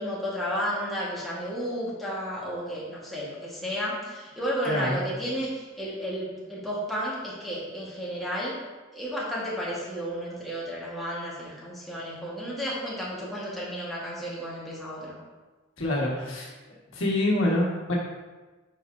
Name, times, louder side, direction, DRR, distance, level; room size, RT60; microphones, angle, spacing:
voice 1, 0.0-8.6 8.9-15.1, equal, ahead, -8 dB, 1.4 m, -32 dB
voice 2, 4.7-5.0 15.8-16.5 16.9-17.9, left 1 dB, 65° left, -3 dB, 1.5 m, -26 dB
8.9 x 4.8 x 2.6 m, 1.2 s
head